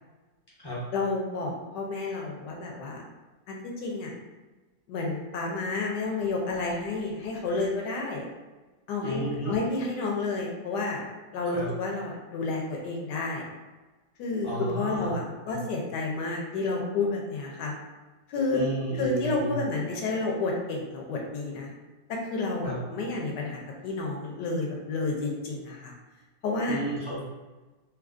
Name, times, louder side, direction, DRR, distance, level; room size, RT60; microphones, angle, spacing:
voice 1, 0.9-3.0 3.5-4.1 4.9-8.2 8.9-11.0 11.3-13.5 14.2-17.7 18.3-18.6 19.0-21.7 22.1-25.9 26.4-26.8, left 3 dB, 75° left, -1 dB, 1.2 m, -30 dB
voice 2, 9.0-9.5 11.5-11.7 14.4-15.1 15.5-15.6 18.5-19.5 22.6-22.8 26.7-27.2, equal, 25° left, -9 dB, 0.5 m, -32 dB
3.2 x 2.4 x 2.4 m, 1.2 s
omnidirectional pair, 2.0 m